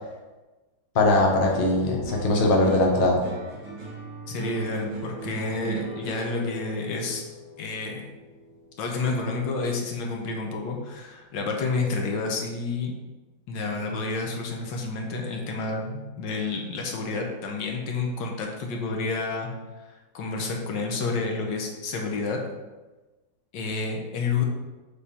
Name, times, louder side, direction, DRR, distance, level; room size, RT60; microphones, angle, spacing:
voice 1, 0.9-3.2, left 2 dB, 40° left, 0 dB, 0.8 m, -21 dB
sound 1, 1.5-9.9 10.3-10.9, right 3 dB, 75° right, 2.5 m, -38 dB
voice 2, 4.3-7.2 7.6-8.1 8.8-12.9 13.5-19.5 19.9-22.4 23.5-24.4, left 3 dB, 75° left, 1 dB, 1.5 m, -29 dB
6.8 x 3.5 x 4.2 m, 1.2 s
omnidirectional pair, 2.1 m